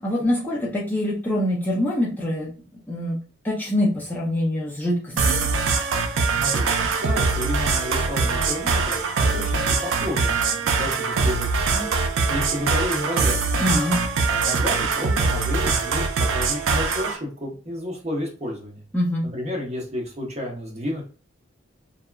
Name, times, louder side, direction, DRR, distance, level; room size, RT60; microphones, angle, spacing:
voice 1, 0.0-2.5 2.9-3.2 3.4-5.5 13.6-14.1 18.9-19.3, left 1 dB, 10° left, -5 dB, 0.5 m, -24 dB
sound 1, 5.2-17.2, right 4 dB, 85° right, 0.4 m, -23 dB
voice 2, 7.0-11.9 12.3-13.5 14.3-16.0 16.3-18.8 19.3-21.0, left 1 dB, 35° right, -1 dB, 0.8 m, -31 dB
2.8 x 2.2 x 2.2 m, 0.37 s
head